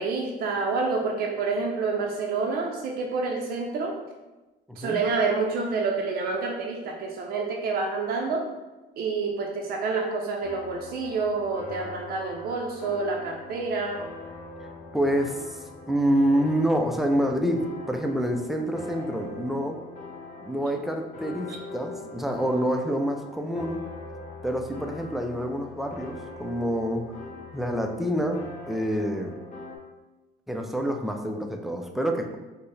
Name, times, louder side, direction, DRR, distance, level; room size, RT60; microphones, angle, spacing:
voice 1, 0.0-4.0 4.8-8.5 9.0-14.0 21.5-21.6, right 4 dB, 65° right, 0 dB, 0.5 m, -28 dB
voice 2, 4.7-5.0 14.9-19.8 20.4-23.8 24.4-27.1 27.5-29.3 30.5-32.4, equal, ahead, 3 dB, 0.3 m, -27 dB
sound 1, 10.4-29.8, left 2 dB, 45° left, 0.8 m, -42 dB
4.4 x 2.1 x 3.2 m, 1.1 s
cardioid pair, 110°, 17 cm